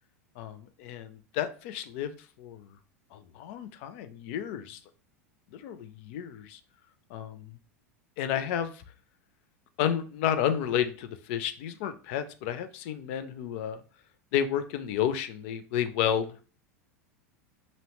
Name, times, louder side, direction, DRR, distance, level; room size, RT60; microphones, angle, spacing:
voice 1, 0.4-2.7 3.1-4.8 5.5-6.6 7.1-7.6 8.2-8.8 9.8-13.8 14.3-16.3, left 9 dB, 50° left, 11 dB, 0.3 m, -31 dB
2.7 x 2.0 x 3.0 m, 0.37 s
figure-of-eight pair, 85°, 8 cm